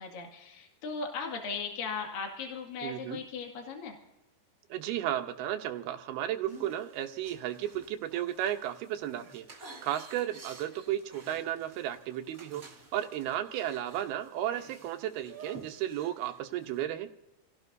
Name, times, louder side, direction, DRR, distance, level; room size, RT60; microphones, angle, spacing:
voice 1, 0.0-4.0, left 5 dB, 65° left, 2 dB, 3.7 m, -37 dB
voice 2, 2.8-3.2 4.7-9.5 9.8-12.6 12.9-17.1, right 12 dB, 80° right, 7 dB, 2.8 m, -34 dB
sound 1, 6.5-16.9, right 3 dB, 30° right, 1.8 m, -52 dB
29.0 x 17.0 x 2.7 m, 0.98 s
omnidirectional pair, 4.5 m